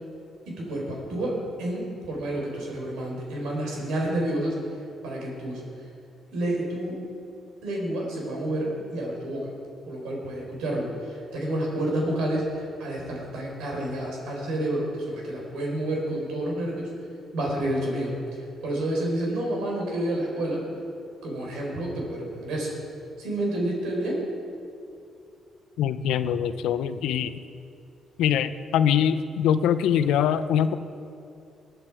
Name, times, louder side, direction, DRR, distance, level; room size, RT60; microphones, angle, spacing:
voice 1, 0.5-4.6 5.0-5.6 6.3-7.0 7.6-9.5 9.8-16.9 17.3-20.6 21.2-22.7 23.2-24.3, right 1 dB, 85° right, -1 dB, 4.2 m, -29 dB
voice 2, 25.8-27.3 28.2-30.7, left 9 dB, 90° left, 12 dB, 0.6 m, -23 dB
19.5 x 9.4 x 4.7 m, 2.5 s
cardioid pair, 90°, 0 cm